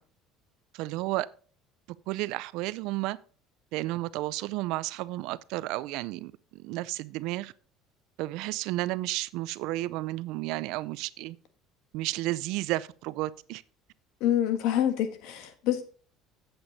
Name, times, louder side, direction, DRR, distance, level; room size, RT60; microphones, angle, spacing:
voice 1, 0.7-1.3 2.1-3.2 3.7-7.5 8.2-11.4 11.9-13.6, right 18 dB, 70° right, 0.4 m, -32 dB
voice 2, 14.2-15.8, left 11 dB, 75° left, 1.6 m, -26 dB
7.9 x 7.8 x 4.0 m
supercardioid pair, 110°, 0 cm